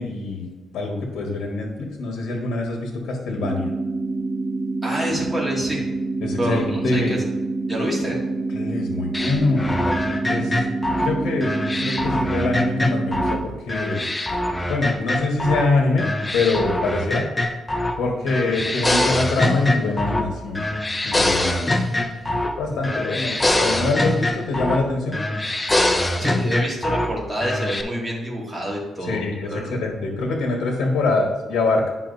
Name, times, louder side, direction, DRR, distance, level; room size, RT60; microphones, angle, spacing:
voice 1, 0.0-3.7 6.2-7.2 8.5-9.7 10.3-10.6 11.0-14.1 14.6-17.3 18.0-20.8 21.0-21.8 22.6-25.2 29.0-31.9, left 3 dB, 90° left, 1 dB, 1.1 m, -24 dB
sound 1, 3.4-13.4, right 3 dB, 30° right, 1.0 m, -27 dB
voice 2, 4.8-5.8 6.4-7.2 7.7-8.2 22.2-22.4 22.7-22.8 26.2-29.8, equal, 10° right, -4 dB, 2.1 m, -27 dB
sound 2, 9.1-13.4 13.7-15.7 16.0-18.0 18.3-20.3 20.6-22.6 22.8-24.9 25.1-27.1 27.4-27.8, left 1 dB, 15° left, 0.6 m, -23 dB
9.9 x 5.7 x 2.6 m, 1.2 s
cardioid pair, 120°, 0 cm